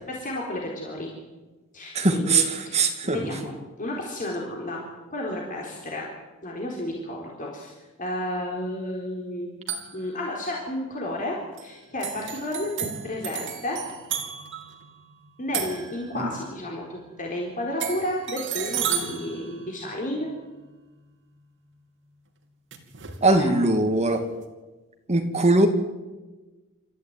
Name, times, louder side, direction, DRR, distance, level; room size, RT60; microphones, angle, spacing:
voice 1, 0.1-1.1 1.7-4.8 5.1-6.1 6.4-7.7 8.0-9.5 9.9-12.7 13.0-13.8 15.4-20.3 23.3-23.5, left 1 dB, 40° left, -2 dB, 4.0 m, -32 dB
voice 2, 1.9-3.2 16.2-16.3 23.2-24.2 25.1-25.7, right 2 dB, 30° right, 5 dB, 2.5 m, -21 dB
sound 1, 9.7-10.1 11.6-11.7 12.0-16.5 17.8-20.3 22.7-23.3, right 8 dB, 60° right, 3.0 m, -33 dB
28.0 x 14.0 x 9.3 m, 1.2 s
head